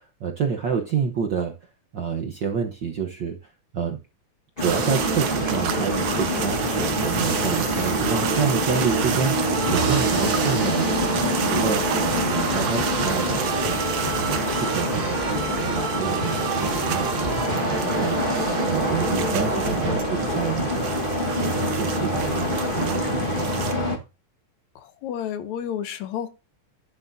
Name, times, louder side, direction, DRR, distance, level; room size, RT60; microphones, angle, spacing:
voice 1, 0.0-4.0 4.6-12.0 12.3-13.5 14.0-24.1, right 6 dB, 65° right, 3 dB, 1.1 m, -29 dB
sound 1, 4.6-24.0, left 1 dB, 30° left, 1.1 m, -26 dB
sound 2, 4.6-23.7, right 9 dB, 85° right, 2.5 m, -31 dB
sound 3, 4.7-20.0, right 3 dB, 45° right, 2.3 m, -30 dB
voice 2, 24.8-26.3, left 9 dB, 75° left, 10 dB, 2.3 m, -31 dB
11.0 x 10.5 x 2.7 m, 0.31 s
omnidirectional pair, 3.3 m